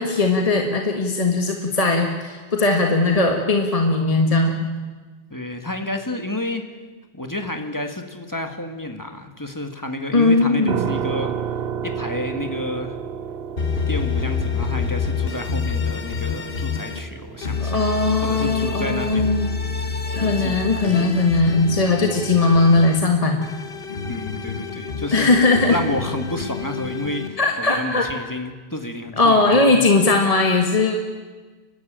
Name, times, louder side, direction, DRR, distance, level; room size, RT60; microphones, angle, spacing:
voice 1, 0.0-4.7 10.1-10.8 17.6-19.5 20.1-23.5 25.1-25.7 27.4-28.1 29.2-31.0, left 3 dB, 35° left, 3 dB, 1.7 m, -19 dB
voice 2, 5.3-6.6 7.1-11.3 11.8-13.0 13.9-17.9 18.2-19.4 20.2-20.7 24.1-25.3 25.7-29.8, left 1 dB, 20° left, 5 dB, 1.8 m, -30 dB
sound 1, 10.7-23.5, right 8 dB, 65° right, 1.2 m, -33 dB
sound 2, 13.6-17.0 17.4-23.0 23.4-27.3, left 5 dB, 60° left, 1.6 m, -27 dB
30.0 x 12.5 x 8.9 m, 1.3 s
omnidirectional pair, 1.1 m